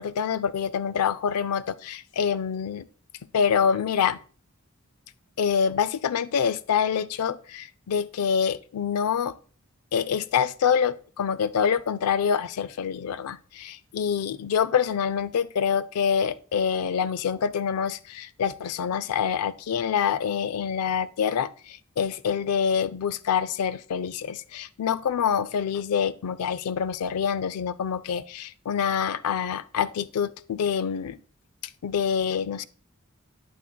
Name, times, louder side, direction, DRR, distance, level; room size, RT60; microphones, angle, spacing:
voice 1, 0.0-2.9 3.3-4.2 5.4-9.3 9.9-31.2 31.8-32.6, left 7 dB, 85° left, 0.4 m, -26 dB
9.3 x 8.3 x 2.2 m
head